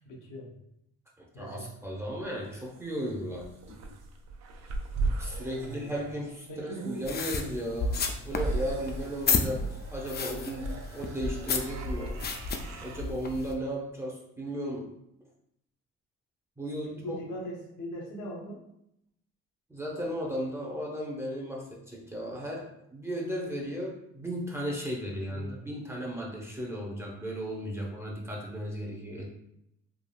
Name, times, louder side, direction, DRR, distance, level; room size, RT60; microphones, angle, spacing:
voice 1, 0.1-0.5 1.3-1.7 3.7-3.8 5.5-5.9 6.5-7.0 16.8-18.6 25.3-25.6, equal, 80° left, -1 dB, 0.9 m, -40 dB
voice 2, 1.2-3.5 5.2-8.0 8.2-9.7 9.9-12.2 12.8-14.9 16.6-17.2 19.7-29.3, equal, 10° right, -2 dB, 0.6 m, -35 dB
sound 1, 2.0-13.0, right 3 dB, 60° right, 0.5 m, -39 dB
sound 2, 7.0-13.5, left 4 dB, 35° left, 0.4 m, -32 dB
3.5 x 2.3 x 2.3 m, 0.78 s
cardioid pair, 90°, 30 cm